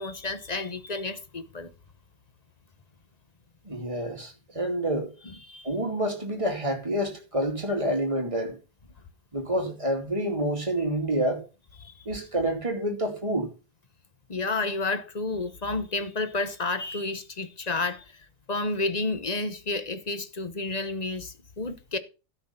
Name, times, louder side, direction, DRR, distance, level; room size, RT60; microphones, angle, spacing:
voice 1, 0.0-1.7 5.4-5.7 11.8-12.0 14.3-18.1 18.5-22.0, left 3 dB, 35° left, 1.0 m, -31 dB
voice 2, 3.6-5.1 5.6-8.6 9.3-11.4 12.1-13.5, right 1 dB, 25° right, 2.6 m, -28 dB
13.0 x 5.7 x 5.6 m
omnidirectional pair, 1.3 m